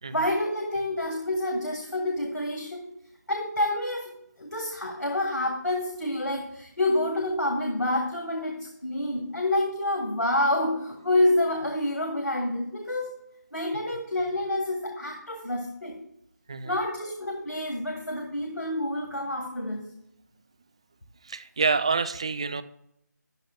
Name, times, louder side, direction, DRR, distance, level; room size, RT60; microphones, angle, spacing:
voice 1, 0.1-2.9 3.3-4.1 4.4-13.2 13.5-16.0 16.6-19.8, left 1 dB, 80° left, 3 dB, 2.0 m, -28 dB
voice 2, 21.2-22.6, right 5 dB, 20° right, 14 dB, 0.3 m, -27 dB
13.0 x 11.0 x 2.4 m, 0.77 s
figure-of-eight pair, 160°, 10 cm